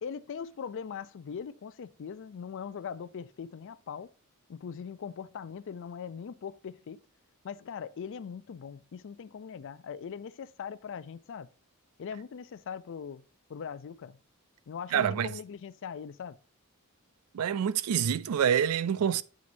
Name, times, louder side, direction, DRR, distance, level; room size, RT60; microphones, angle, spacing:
voice 1, 0.0-4.1 4.5-7.0 7.4-11.5 12.0-13.2 13.5-14.2 14.7-16.4, left 7 dB, 60° left, 0.4 m, -41 dB
voice 2, 14.9-15.3 17.3-19.2, right 8 dB, 85° right, 0.4 m, -26 dB
7.6 x 6.1 x 2.6 m
head